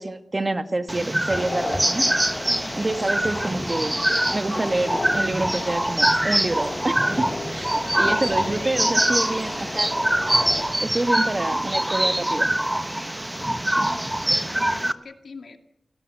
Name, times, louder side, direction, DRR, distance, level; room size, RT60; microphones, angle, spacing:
voice 1, 0.0-2.1 2.8-4.0 4.3-9.9 10.8-12.6, right 2 dB, 30° right, 9 dB, 1.9 m, -27 dB
sound 1, 0.9-14.9, right 1 dB, 10° right, 1.1 m, -24 dB
sound 2, 1.3-10.7, left 2 dB, 40° left, 2.8 m, -34 dB
voice 2, 2.5-2.9 7.7-8.5 13.9-15.6, left 4 dB, 70° left, 7 dB, 2.3 m, -43 dB
sound 3, 2.5-14.3, right 2 dB, 90° right, 7.1 m, -51 dB
29.5 x 18.0 x 7.7 m, 0.80 s
wide cardioid pair, 110°, 0 cm